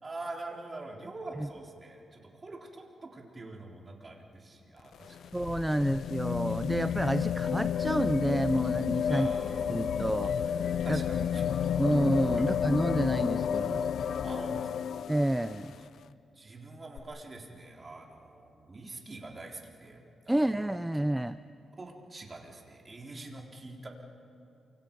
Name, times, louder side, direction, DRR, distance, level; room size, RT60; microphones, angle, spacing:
voice 1, 0.0-5.3 9.1-9.9 10.8-11.4 14.2-14.7 16.4-20.0 20.3-20.4 21.8-23.9, right 2 dB, 30° right, 0 dB, 3.7 m, -45 dB
sound 1, 4.8-15.8 17.0-17.1, left 8 dB, 75° left, 0.6 m, -31 dB
voice 2, 5.3-9.3 9.7-11.5 11.8-13.8 15.1-15.7 20.3-21.4, right 1 dB, 10° right, 12 dB, 0.5 m, -29 dB
28.5 x 25.0 x 5.4 m, 2.6 s
cardioid pair, 100°, 0 cm